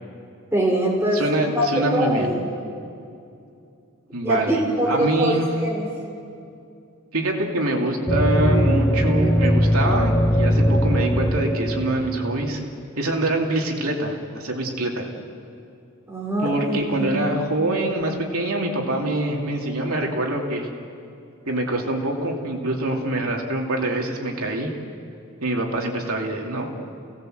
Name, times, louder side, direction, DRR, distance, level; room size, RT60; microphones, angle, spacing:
voice 1, 0.5-2.4 4.2-5.9 16.1-17.3, right 1 dB, 10° right, -2 dB, 3.5 m, -23 dB
voice 2, 1.1-2.4 4.1-5.5 7.1-12.6 13.0-15.1 16.4-20.7 21.5-24.7 25.4-26.7, right 1 dB, 70° right, 1 dB, 2.8 m, -25 dB
sound 1, 8.1-12.8, equal, 10° left, 0.7 m, -20 dB
29.5 x 18.0 x 7.9 m, 2.6 s
head